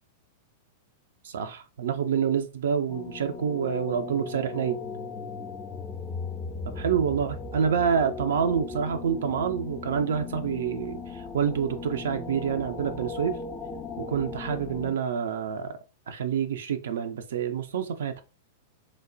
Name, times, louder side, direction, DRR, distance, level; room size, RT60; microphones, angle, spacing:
voice 1, 1.2-4.8 6.8-13.4 14.0-15.7 16.1-18.2, right 7 dB, 60° right, 8 dB, 0.3 m, -27 dB
sound 1, 2.9-14.9, left 4 dB, 20° left, 0.4 m, -37 dB
3.0 x 2.0 x 2.4 m, 0.31 s
figure-of-eight pair, 95°, 0 cm